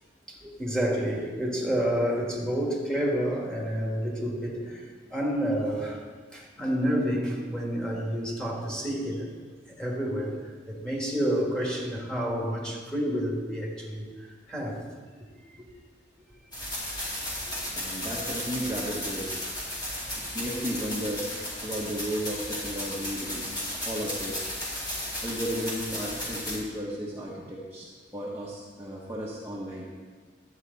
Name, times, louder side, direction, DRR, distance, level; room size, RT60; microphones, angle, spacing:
voice 1, 0.3-6.0 6.3-9.3 9.7-14.8, equal, 5° left, -3 dB, 1.9 m, -29 dB
sound 1, 16.5-26.6, left 1 dB, 25° left, 2.4 m, -34 dB
voice 2, 17.7-19.3 20.1-21.3 21.6-23.5 23.8-24.5 25.2-30.0, equal, 15° right, -6 dB, 1.1 m, -34 dB
11.5 x 8.0 x 4.1 m, 1.5 s
head